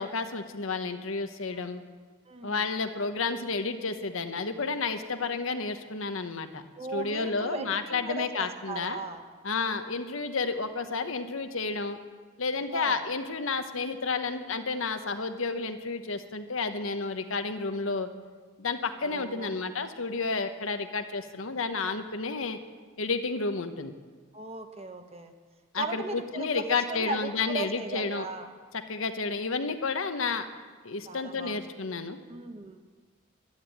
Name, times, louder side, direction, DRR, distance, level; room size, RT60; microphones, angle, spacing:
voice 1, 0.0-1.8 2.4-6.6 6.9-9.0 9.4-12.0 12.4-18.1 18.6-22.6 23.0-23.9 25.7-28.3 28.9-30.5 30.8-32.2, left 4 dB, 70° left, 8 dB, 1.1 m, -31 dB
voice 2, 2.3-2.7 6.8-9.2 12.7-13.0 19.0-19.6 24.3-25.3 25.8-28.5 31.1-31.7 32.3-32.8, right 2 dB, 30° right, 6 dB, 1.2 m, -37 dB
12.5 x 11.0 x 10.0 m, 1.5 s
head